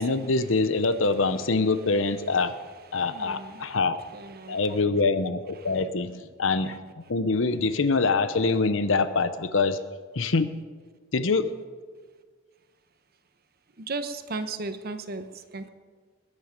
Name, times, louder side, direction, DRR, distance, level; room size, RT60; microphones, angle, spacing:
voice 1, 0.0-2.6 2.9-4.0 4.5-9.8 10.1-10.5 11.1-11.5, left 3 dB, 80° left, 12 dB, 0.8 m, -24 dB
voice 2, 2.9-3.8 4.1-4.6 5.6-5.7 13.8-15.7, right 3 dB, 50° right, 9 dB, 1.0 m, -36 dB
20.5 x 9.9 x 5.2 m, 1.5 s
head